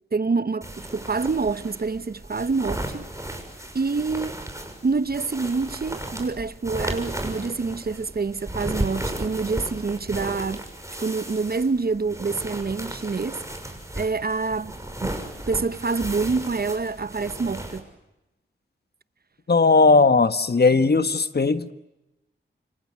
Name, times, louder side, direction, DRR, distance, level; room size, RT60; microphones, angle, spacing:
voice 1, 0.1-3.1 3.7-4.3 4.8-10.6 11.0-13.4 14.0-17.9, right 4 dB, 50° right, 1.0 m, -27 dB
sound 1, 0.6-17.8, right 1 dB, 15° right, 6.3 m, -35 dB
voice 2, 19.5-21.7, left 3 dB, 50° left, 1.5 m, -18 dB
27.5 x 24.5 x 7.7 m
cardioid pair, 40°, 21 cm